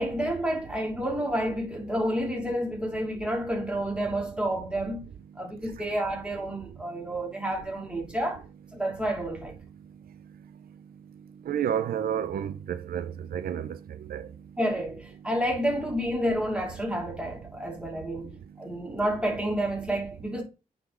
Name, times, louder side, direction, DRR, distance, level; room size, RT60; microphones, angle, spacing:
voice 1, 0.0-5.0 5.4-8.4 8.7-9.5 14.6-18.3 18.6-20.4, equal, 5° right, 2.5 m, -29 dB
voice 2, 11.5-13.8 14.1-14.3, right 9 dB, 90° right, 0.5 m, -30 dB
9.0 x 3.8 x 3.7 m
cardioid pair, 85°, 15 cm